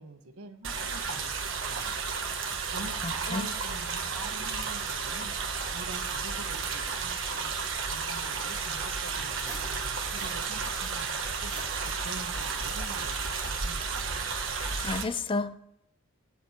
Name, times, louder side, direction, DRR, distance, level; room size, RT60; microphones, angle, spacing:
voice 1, 0.0-2.0 2.3-7.5 7.9-11.5 11.8-14.1, right 2 dB, 75° right, 6 dB, 1.3 m, -45 dB
sound 1, 0.6-15.0, right 5 dB, 55° right, 1.3 m, -32 dB
voice 2, 3.0-3.5 14.5-15.5, left 3 dB, 25° left, 12 dB, 0.4 m, -32 dB
sound 2, 6.9-7.9 8.4-10.5 10.7-12.1 12.4-13.9, equal, 5° left, 2.8 m, -50 dB
20.5 x 10.0 x 2.9 m, 0.83 s
head